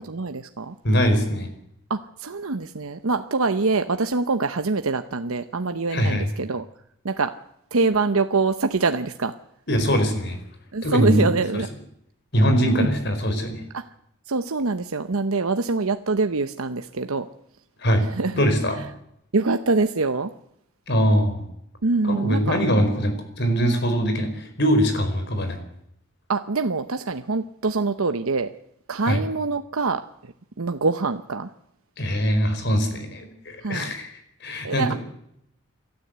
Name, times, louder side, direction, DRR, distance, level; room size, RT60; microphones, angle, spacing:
voice 1, 0.1-0.7 1.9-6.7 7.0-7.4 7.7-9.3 10.7-11.7 13.7-13.8 14.3-17.3 18.2-18.4 19.3-20.3 21.8-22.6 26.3-28.5 28.9-30.1 30.6-31.5 33.6-33.9 34.6-34.9, right 3 dB, 85° right, 8 dB, 0.9 m, -24 dB
voice 2, 0.8-1.5 5.9-6.3 9.7-10.4 10.8-11.3 11.5-11.6 12.3-13.6 17.8-18.1 18.4-18.9 20.9-21.5 22.0-25.6 29.1-29.2 32.0-34.9, equal, 50° left, 7 dB, 4.6 m, -22 dB
27.5 x 13.5 x 8.1 m, 0.75 s
head